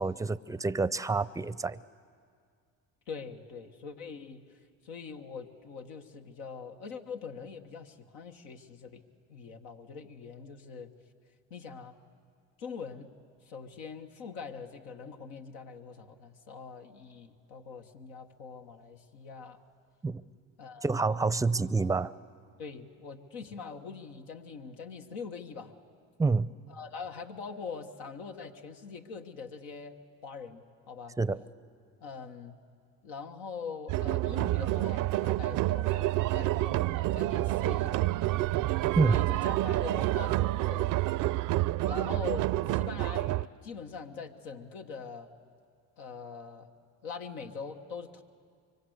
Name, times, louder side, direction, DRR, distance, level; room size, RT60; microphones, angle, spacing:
voice 1, 0.0-1.8 20.0-20.2 20.8-22.1 26.2-26.5 31.2-31.4 39.0-39.2, right 3 dB, 10° right, 17 dB, 0.6 m, -27 dB
voice 2, 3.1-9.0 9.3-10.9 11.5-11.9 12.6-13.1 13.4-19.6 20.6-21.3 22.6-25.7 26.7-30.0 30.2-31.2 32.0-32.6 33.0-38.1 39.0-41.1 41.8-45.3 46.0-46.7 47.0-48.2, left 5 dB, 85° left, 4 dB, 1.4 m, -43 dB
sound 1, 33.9-43.5, right 16 dB, 60° right, 0.6 m, -28 dB
24.5 x 24.5 x 8.0 m, 2.1 s
supercardioid pair, 75°, 36 cm